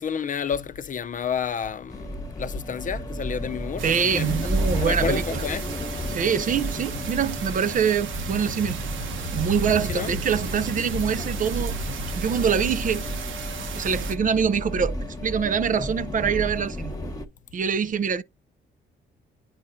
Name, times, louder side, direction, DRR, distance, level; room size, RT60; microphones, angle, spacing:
voice 1, 0.0-4.5 4.7-5.7 9.9-10.1, left 7 dB, 40° left, 0.6 m, -30 dB
sound 1, 1.9-17.3, equal, 20° left, 1.1 m, -32 dB
voice 2, 3.8-5.4 6.1-8.8 9.3-11.8 12.1-13.0 13.6-16.9 17.5-18.2, right 7 dB, 40° right, 0.5 m, -25 dB
sound 2, 3.8-14.1, right 4 dB, 75° right, 1.1 m, -34 dB
9.4 x 4.2 x 2.6 m
cardioid pair, 90°, 20 cm